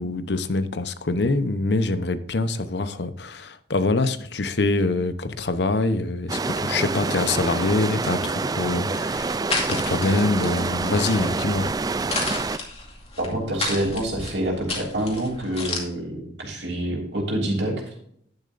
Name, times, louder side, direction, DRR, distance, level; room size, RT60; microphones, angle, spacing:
voice 1, 0.0-9.4 9.7-11.7, left 3 dB, 65° left, 12 dB, 0.8 m, -24 dB
sound 1, 6.3-12.6, right 3 dB, 20° right, 0.3 m, -27 dB
sound 2, 9.1-15.8, left 3 dB, 35° left, 2.3 m, -33 dB
voice 2, 13.2-17.8, right 1 dB, 70° right, -1 dB, 3.1 m, -27 dB
10.5 x 9.9 x 2.6 m, 0.67 s
head